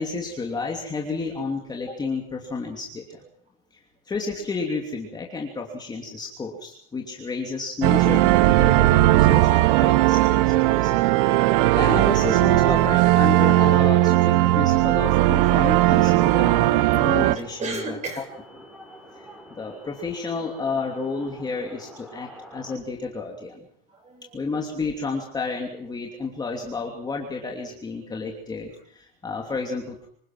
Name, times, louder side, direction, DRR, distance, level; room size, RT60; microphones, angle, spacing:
voice 1, 0.0-3.2 3.7-3.8 4.1-10.9 11.5-18.0 19.2-19.3 19.6-23.7 24.3-30.1, left 4 dB, 15° left, 0 dB, 2.9 m, -31 dB
sound 1, 7.8-17.4, right 16 dB, 60° right, 1.1 m, -18 dB
sound 2, 10.1-22.8, equal, 5° right, 5.6 m, -46 dB
voice 2, 10.7-11.7 14.7-14.9 17.6-18.2 23.9-24.4, right 3 dB, 25° right, 4 dB, 7.7 m, -36 dB
26.0 x 19.0 x 6.2 m, 0.66 s
supercardioid pair, 145°, 29 cm